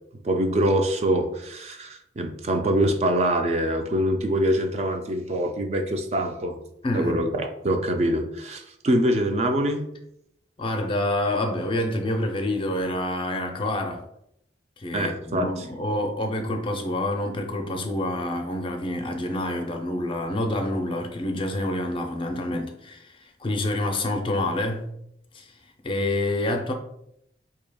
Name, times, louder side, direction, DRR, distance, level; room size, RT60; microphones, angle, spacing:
voice 1, 0.2-6.6 6.9-9.8 14.9-15.7, right 1 dB, 35° right, 0.4 m, -24 dB
voice 2, 6.8-7.2 10.6-14.0 14.8-24.9 25.3-25.5 25.8-26.7, left 1 dB, 30° left, 0.4 m, -27 dB
4.7 x 2.7 x 2.2 m
head